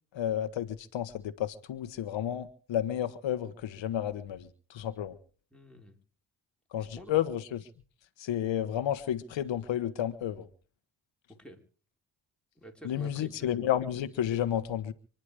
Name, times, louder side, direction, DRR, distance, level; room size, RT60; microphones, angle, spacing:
voice 1, 0.1-5.2 6.7-7.6 8.2-10.5 12.8-14.9, left 11 dB, 80° left, 10 dB, 1.4 m, -31 dB
voice 2, 5.5-6.0 6.8-7.2 11.3-11.6 12.6-13.7, equal, ahead, 2 dB, 4.6 m, -48 dB
25.5 x 10.5 x 5.0 m, 0.41 s
cardioid pair, 70°, 45 cm